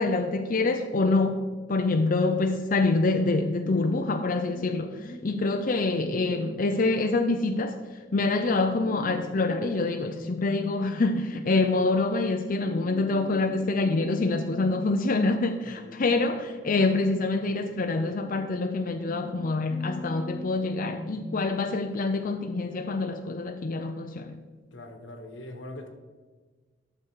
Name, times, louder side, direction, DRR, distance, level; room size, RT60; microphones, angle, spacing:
voice 1, 0.0-7.8 8.1-24.4, left 3 dB, 50° left, 5 dB, 0.6 m, -26 dB
sound 1, 3.6-21.5, equal, 5° left, 0.8 m, -43 dB
voice 2, 15.6-16.0 24.7-25.9, left 1 dB, 90° left, 6 dB, 1.3 m, -42 dB
12.0 x 6.5 x 4.7 m, 1.4 s
head